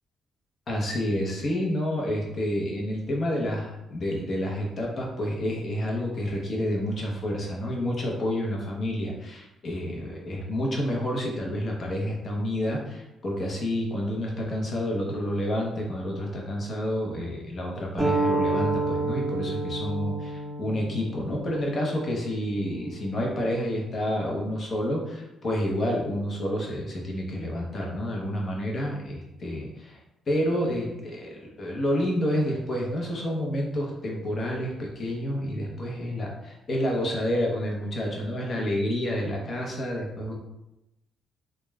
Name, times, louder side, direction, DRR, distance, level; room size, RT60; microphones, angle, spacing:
voice 1, 0.7-30.0 30.3-40.3, equal, 45° left, -1 dB, 0.7 m, -29 dB
sound 1, 18.0-23.2, right 2 dB, ahead, 1.4 m, -30 dB
3.0 x 2.2 x 2.2 m, 0.92 s
cardioid pair, 90°, 0 cm